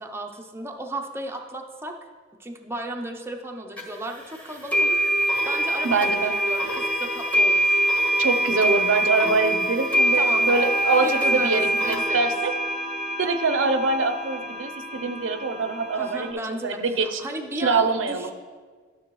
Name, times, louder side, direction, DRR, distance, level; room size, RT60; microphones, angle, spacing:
voice 1, 0.0-1.9 2.4-7.8 10.1-10.5 11.0-12.2 16.0-18.3, right 1 dB, 15° right, 2 dB, 0.6 m, -35 dB
sound 1, 3.8-3.9 4.7-16.3, right 1 dB, 5° left, 1.4 m, -24 dB
voice 2, 5.8-6.3 8.2-12.5 13.2-17.2 17.6-18.3, right 3 dB, 85° right, 9 dB, 0.6 m, -24 dB
12.5 x 6.6 x 3.1 m, 1.5 s
head